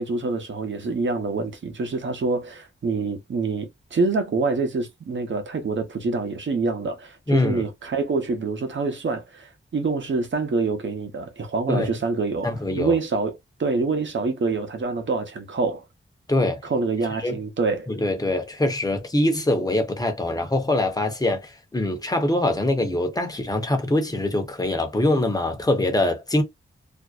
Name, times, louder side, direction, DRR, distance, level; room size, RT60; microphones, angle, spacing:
voice 1, 0.0-12.5 12.8-15.8 16.6-17.9, right 4 dB, 60° right, 0.8 m, -26 dB
voice 2, 7.3-7.6 11.7-11.9 12.4-13.0 16.3-16.6 17.2-17.4 17.9-26.4, left 1 dB, 15° left, 0.8 m, -23 dB
2.5 x 2.1 x 2.4 m
wide cardioid pair, 80°, 21 cm